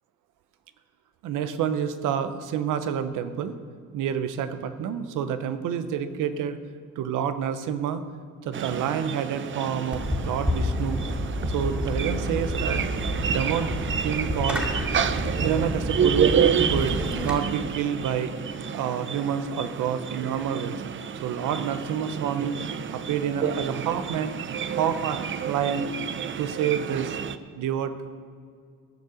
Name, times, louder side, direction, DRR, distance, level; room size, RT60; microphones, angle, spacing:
voice 1, 1.2-3.5 3.9-6.6 7.0-8.0 8.4-11.0 11.5-12.8 13.2-13.7 14.0-14.7 15.4-16.3 16.7-18.4 18.7-20.8 21.2-22.6 22.9-24.4 24.7-25.9 26.4-27.2 27.6-28.2, right 8 dB, 90° right, 10 dB, 0.9 m, -28 dB
sound 1, 8.5-27.4, right 7 dB, 40° right, 0.6 m, -29 dB
Fireworks, 9.9-17.4, left 1 dB, 5° right, 2.4 m, -29 dB
16.0 x 6.7 x 7.1 m, 2.2 s
cardioid pair, 90°, 30 cm